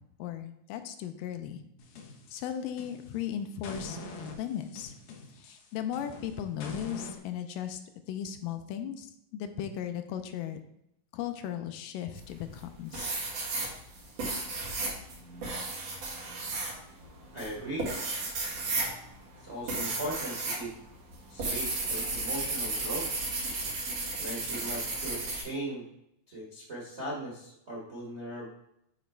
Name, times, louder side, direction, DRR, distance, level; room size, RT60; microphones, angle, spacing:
voice 1, 0.2-1.6 2.3-4.0 4.4-5.0 5.3-7.8 8.1-10.6 11.1-13.1, left 9 dB, 80° left, 8 dB, 2.2 m, -36 dB
sound 1, 1.8-3.2 3.6-7.2, left 3 dB, 65° left, 2.0 m, -44 dB
sound 2, 12.2-12.6 12.9-20.6 20.9-25.4, right 3 dB, 55° right, 2.3 m, -34 dB
voice 2, 17.3-17.9 19.4-20.7 21.3-23.1 24.2-25.8 26.3-28.5, right 1 dB, 85° right, -5 dB, 0.6 m, -38 dB
9.0 x 3.1 x 4.5 m, 0.78 s
omnidirectional pair, 4.0 m